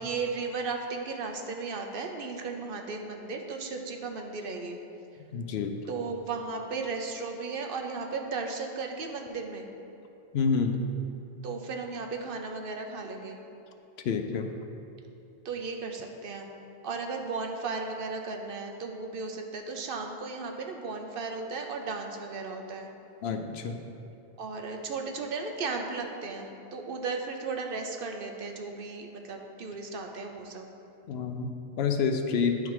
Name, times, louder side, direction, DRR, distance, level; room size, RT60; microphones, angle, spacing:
voice 1, 0.0-4.8 5.9-9.7 11.4-13.4 15.4-16.5 16.8-22.9 24.4-30.7, right 4 dB, 60° right, 3 dB, 0.8 m, -35 dB
voice 2, 5.3-5.8 10.3-10.8 14.0-14.5 23.2-23.8 31.1-31.5 31.8-32.6, left 5 dB, 75° left, 6 dB, 0.8 m, -28 dB
9.9 x 3.7 x 4.7 m, 2.7 s
omnidirectional pair, 1.1 m